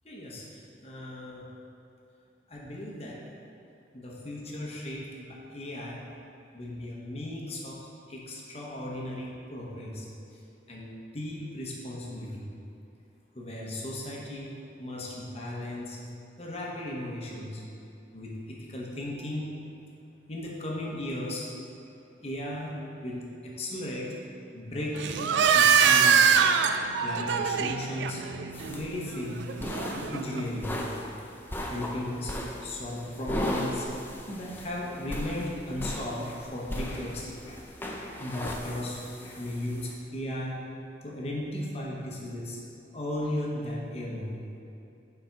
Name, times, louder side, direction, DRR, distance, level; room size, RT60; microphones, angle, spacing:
voice 1, 0.0-1.4 2.5-3.2 3.9-6.0 6.5-7.8 8.1-10.1 10.7-12.5 13.3-16.0 16.4-17.6 18.1-19.5 20.3-21.5 22.2-24.2 24.5-26.3 27.0-28.2 28.7-29.5 29.9-30.7 31.7-32.4 32.6-33.9 34.3-37.7 38.0-40.6 41.0-42.6 42.9-44.3, left 1 dB, 35° left, -3 dB, 1.0 m, -36 dB
sound 1, 24.9-30.4, right 6 dB, 70° right, 0.3 m, -24 dB
sound 2, 28.5-39.9, left 1 dB, 10° left, 0.5 m, -37 dB
6.8 x 4.4 x 4.6 m, 2.7 s
head